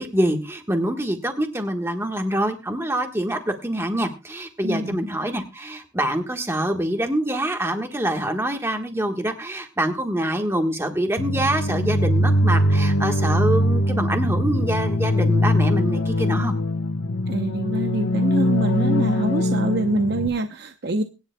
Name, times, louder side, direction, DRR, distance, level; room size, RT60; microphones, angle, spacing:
voice 1, 0.0-16.5, right 1 dB, 10° right, 4 dB, 1.3 m, -25 dB
voice 2, 4.6-5.0 17.3-21.0, right 2 dB, 50° right, 6 dB, 0.7 m, -25 dB
sound 1, 11.2-20.3, left 1 dB, 80° left, 1.0 m, -21 dB
23.5 x 10.0 x 2.2 m, 0.29 s
head